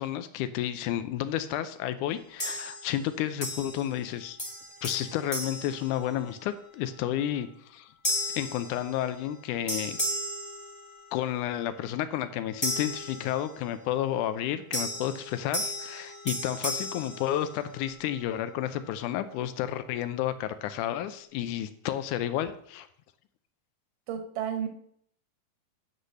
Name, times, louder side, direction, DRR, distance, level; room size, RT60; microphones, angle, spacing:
voice 1, 0.0-4.4 4.8-7.9 8.4-10.0 11.1-22.9, left 11 dB, 80° left, 12 dB, 2.0 m, -31 dB
sound 1, 2.4-3.0 3.4-4.1 4.4-6.5 7.1-7.3 8.0-9.4 9.7-11.3 12.6-13.8 14.7-18.0, equal, 35° left, 0.4 m, -35 dB
voice 2, 24.1-24.7, right 8 dB, 90° right, 7 dB, 2.8 m, -32 dB
9.9 x 4.0 x 6.3 m, 0.66 s
omnidirectional pair, 3.6 m